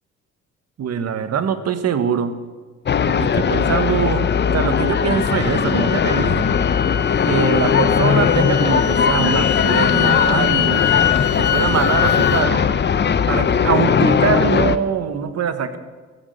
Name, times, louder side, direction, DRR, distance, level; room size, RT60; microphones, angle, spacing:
voice 1, 0.8-2.3 3.0-6.5 7.2-10.9 11.4-12.7 13.3-15.8, right 7 dB, 55° right, 10 dB, 1.4 m, -23 dB
sound 1, 2.9-14.8, left 7 dB, 35° left, 0.8 m, -18 dB
sound 2, 3.3-12.5, left 10 dB, 75° left, 1.2 m, -25 dB
15.0 x 14.5 x 6.6 m, 1.4 s
cardioid pair, 90°, 30 cm